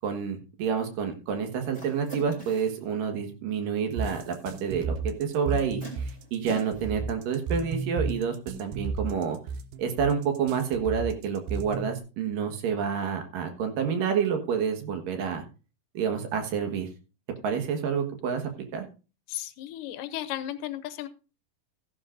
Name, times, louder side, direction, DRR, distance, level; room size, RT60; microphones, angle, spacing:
voice 1, 0.0-9.4 9.8-15.4 15.9-16.9 17.4-18.9, right 7 dB, 70° right, 5 dB, 3.1 m, -29 dB
sound 1, 1.7-2.8 4.6-4.7 5.8-6.9, right 2 dB, 20° right, 3.1 m, -42 dB
sound 2, 4.0-12.0, right 5 dB, 90° right, 2.5 m, -33 dB
voice 2, 19.3-21.1, left 12 dB, 80° left, 13 dB, 2.1 m, -35 dB
15.0 x 11.0 x 2.5 m, 0.33 s
omnidirectional pair, 4.0 m